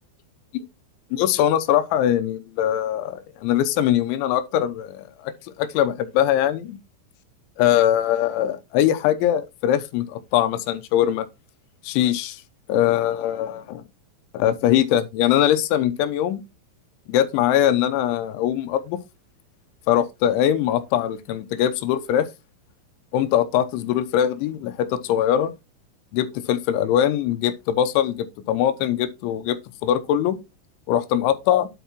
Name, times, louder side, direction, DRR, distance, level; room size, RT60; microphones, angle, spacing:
voice 1, 1.1-6.8 7.6-11.3 11.8-12.4 12.7-13.8 14.3-16.4 17.1-19.0 19.9-22.3 23.1-25.5 26.1-30.4 30.9-31.7, left 11 dB, 85° left, 3.0 m, -22 dB
9.3 x 8.1 x 2.9 m
omnidirectional pair, 5.6 m